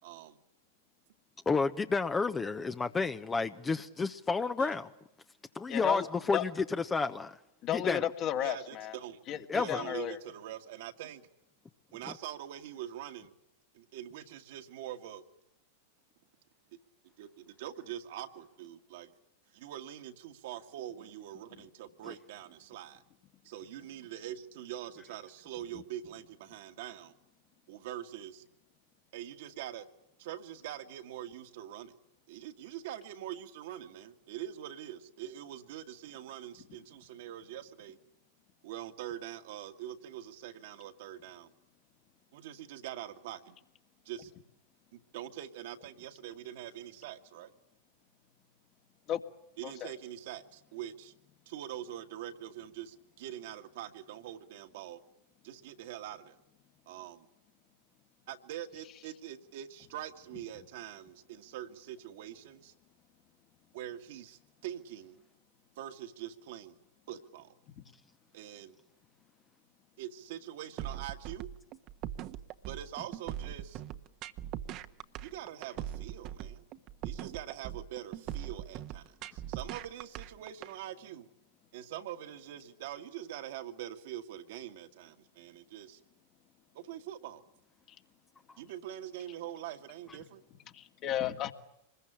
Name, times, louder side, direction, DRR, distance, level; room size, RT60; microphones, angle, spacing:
voice 1, 0.0-0.4 4.6-4.7 8.4-9.2 9.5-11.3 11.9-13.3 13.7-15.2 17.2-19.1 19.5-23.0 23.4-27.1 27.7-28.4 29.1-29.9 30.2-32.0 32.3-38.0 38.6-41.5 42.3-43.6 44.1-44.3 44.9-47.5 49.6-51.1 51.5-55.0 55.4-56.4 56.9-57.3 58.3-62.7 63.7-65.2 65.8-66.8 67.1-67.6 68.3-68.8 70.0-71.5 72.7-73.8 75.2-76.6 77.0-81.3 81.7-86.0 86.7-87.4 88.6-90.4, right 11 dB, 60° right, 6 dB, 2.0 m, -44 dB
voice 2, 1.4-4.9 5.5-7.4 7.7-8.1 9.5-9.8 22.0-22.1, left 4 dB, 15° left, 9 dB, 1.0 m, -31 dB
voice 3, 5.7-6.0 6.3-6.4 7.6-9.0 9.3-10.2 25.7-25.8 49.1-49.2 49.6-49.9 90.7-91.5, left 11 dB, 40° left, 6 dB, 2.3 m, -33 dB
sound 1, 70.8-80.7, right 12 dB, 45° right, 1.3 m, -40 dB
26.0 x 21.5 x 8.9 m, 0.84 s
hypercardioid pair, 95°, 0 cm